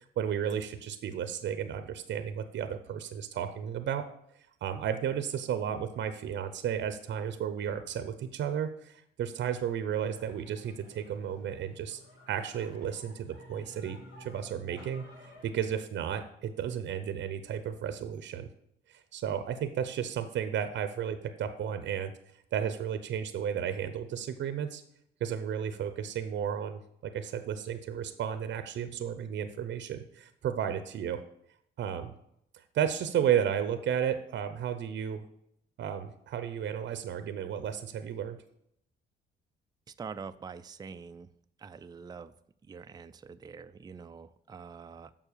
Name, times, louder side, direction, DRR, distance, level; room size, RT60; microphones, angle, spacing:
voice 1, 0.0-4.0 4.6-12.0 12.3-15.0 15.4-18.5 18.9-22.1 22.5-24.8 25.2-31.2 31.8-32.1 32.7-35.2 35.8-38.4, right 9 dB, 65° right, 10 dB, 0.7 m, -33 dB
sound 1, 9.9-15.5, left 1 dB, 70° left, 3.7 m, -53 dB
voice 2, 39.9-41.3 41.6-42.3 42.7-45.3, right 5 dB, 20° right, 10 dB, 0.4 m, -45 dB
7.2 x 5.5 x 6.7 m, 0.74 s
cardioid pair, 90°, 20 cm